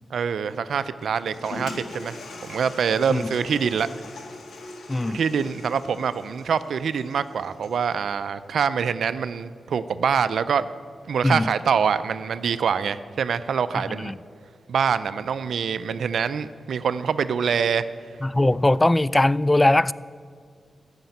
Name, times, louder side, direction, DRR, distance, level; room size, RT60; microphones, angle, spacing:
voice 1, 0.1-2.2 2.4-3.9 5.0-10.7 11.1-14.1 14.7-17.8, right 6 dB, 80° right, 0.4 m, -25 dB
Toilet flush, 1.0-7.9, left 2 dB, 85° left, 1.7 m, -41 dB
voice 2, 4.9-5.2 11.2-11.5 13.9-14.2 18.2-19.9, left 1 dB, 20° left, 0.3 m, -20 dB
13.0 x 6.7 x 9.4 m
cardioid pair, 60°, 0 cm